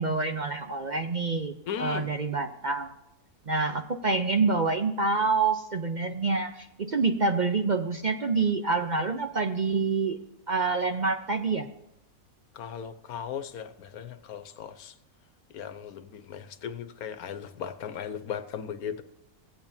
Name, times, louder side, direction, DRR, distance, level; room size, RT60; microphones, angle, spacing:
voice 1, 0.0-2.9 3.5-10.2 10.5-11.7, right 4 dB, 45° right, 0.6 m, -27 dB
voice 2, 1.7-2.1 12.5-14.9 15.5-19.0, left 8 dB, 85° left, 1.3 m, -37 dB
16.5 x 8.8 x 2.7 m
omnidirectional pair, 1.5 m